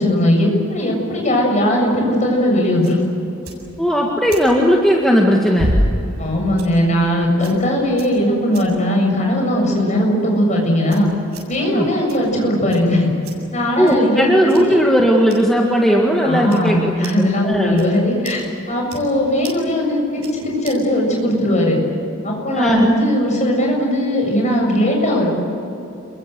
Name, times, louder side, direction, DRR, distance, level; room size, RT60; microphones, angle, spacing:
voice 1, 0.0-3.0 6.2-11.1 11.5-13.1 13.5-14.2 14.6-14.8 16.2-21.8 22.2-25.3, left 1 dB, 30° left, 0 dB, 7.4 m, -18 dB
sound 1, 1.8-21.0, equal, 85° right, 7.8 m, -32 dB
voice 2, 3.8-5.7 11.6-11.9 13.8-17.8 22.5-23.0, equal, ahead, -2 dB, 1.9 m, -16 dB
28.5 x 23.0 x 8.0 m, 2.9 s
head